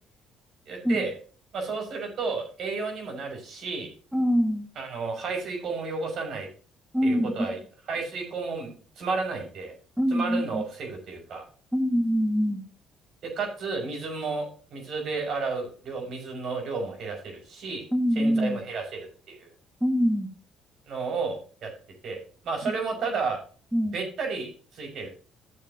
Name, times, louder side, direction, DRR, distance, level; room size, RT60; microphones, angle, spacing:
voice 1, 0.7-1.1 1.5-3.9 4.8-6.5 7.0-7.6 7.9-8.7 9.0-9.7 10.1-11.4 13.4-14.5 14.7-17.8 18.2-19.5 20.9-21.7 22.0-23.4 23.9-25.1, right 4 dB, 60° right, 2 dB, 5.6 m, -32 dB
voice 2, 4.1-4.7 6.9-7.3 10.0-10.6 11.7-12.6 17.9-18.6 19.8-20.3 23.7-24.0, equal, 5° right, 4 dB, 1.8 m, -24 dB
14.5 x 7.1 x 2.8 m, 0.40 s
cardioid pair, 90°, 0 cm